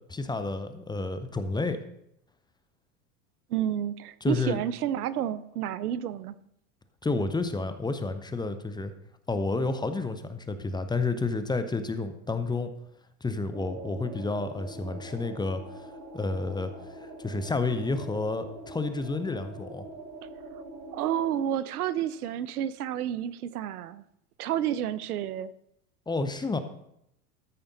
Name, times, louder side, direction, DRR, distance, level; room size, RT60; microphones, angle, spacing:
voice 1, 0.1-1.8 4.2-4.6 7.0-8.9 9.3-12.7 13.2-15.6 16.1-16.7 17.0-19.9 26.1-26.6, left 3 dB, 10° left, 0.7 m, -30 dB
voice 2, 3.5-6.4 20.9-24.0 24.4-25.5, right 10 dB, 90° right, 0.6 m, -30 dB
sound 1, 13.5-21.4, right 2 dB, 50° right, 2.2 m, -44 dB
14.0 x 5.2 x 4.0 m
hypercardioid pair, 100°, 44 cm